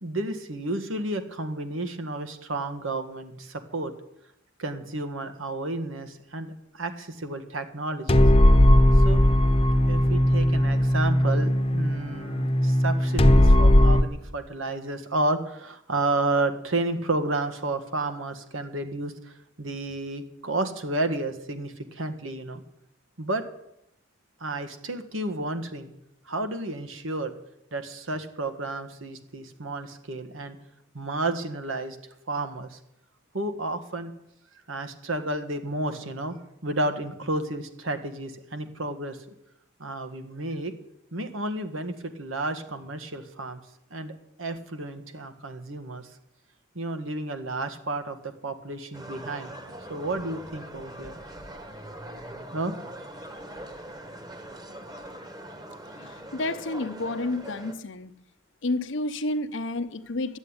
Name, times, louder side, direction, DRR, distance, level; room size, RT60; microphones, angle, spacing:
voice 1, 0.0-3.9 4.6-8.3 9.0-9.2 9.9-22.6 23.2-23.4 24.4-25.9 26.2-27.3 27.7-30.6 30.9-32.0 32.3-32.8 33.3-34.1 34.7-36.4 36.6-39.2 39.8-40.7 41.1-43.6 43.9-46.1 46.7-49.5 49.9-51.7 52.0-52.2 52.5-52.7, right 2 dB, 75° right, 1.7 m, -31 dB
sound 1, 8.1-14.0, left 1 dB, 30° left, 0.9 m, -18 dB
sound 2, 48.9-57.7, right 1 dB, 20° right, 1.3 m, -42 dB
voice 2, 56.3-58.2 58.6-60.4, left 2 dB, 65° left, 0.9 m, -30 dB
13.0 x 8.2 x 9.7 m
head